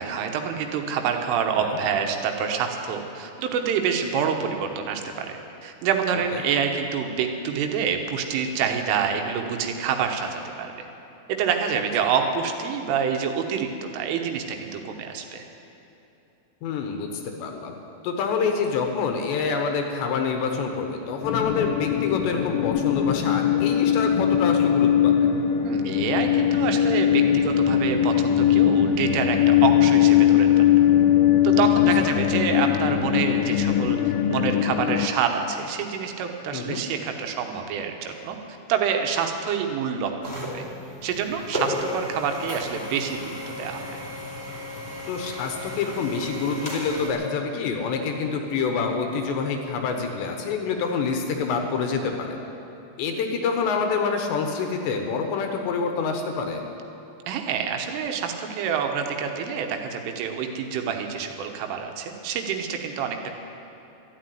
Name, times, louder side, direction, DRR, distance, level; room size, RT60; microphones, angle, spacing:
voice 1, 0.0-10.9 11.3-15.4 25.6-30.5 31.4-34.0 34.3-38.4 38.7-40.7 41.0-44.0 57.3-63.3, right 7 dB, 85° right, 4 dB, 3.6 m, -27 dB
voice 2, 16.6-17.8 18.0-25.3 32.0-32.1 36.5-36.8 45.1-52.4 53.0-56.6, left 5 dB, 75° left, 4 dB, 3.0 m, -27 dB
sound 1, 21.2-35.1, left 10 dB, 90° left, 2.5 m, -20 dB
sound 2, 40.2-47.1, left 1 dB, 20° left, 2.3 m, -34 dB
12.5 x 12.0 x 9.2 m, 3.0 s
omnidirectional pair, 5.6 m